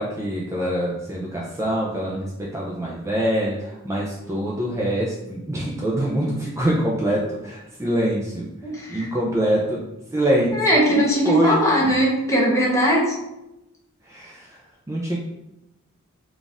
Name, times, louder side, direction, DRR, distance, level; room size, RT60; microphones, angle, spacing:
voice 1, 0.0-8.5 8.9-9.8 10.1-10.5 10.9-12.0 14.1-14.6 14.9-15.2, right 1 dB, 15° right, -5 dB, 0.4 m, -24 dB
voice 2, 8.6-9.1 10.5-13.1, equal, 15° left, -3 dB, 0.8 m, -19 dB
4.0 x 2.4 x 3.4 m, 0.92 s
head